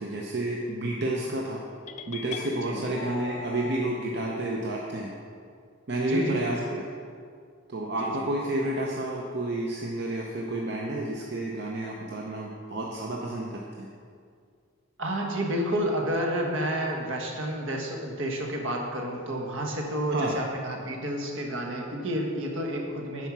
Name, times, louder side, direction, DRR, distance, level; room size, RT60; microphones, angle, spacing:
voice 1, 0.0-1.6 2.1-5.1 5.9-6.8 7.7-13.9 20.1-20.4, right 1 dB, 55° right, -2 dB, 0.7 m, -30 dB
sound 1, 1.9-3.9, left 5 dB, 35° left, 0.3 m, -39 dB
voice 2, 2.6-2.9 6.1-6.8 8.0-8.2 15.0-23.3, right 1 dB, 70° right, 1 dB, 1.3 m, -30 dB
9.7 x 4.6 x 6.1 m, 2.2 s
head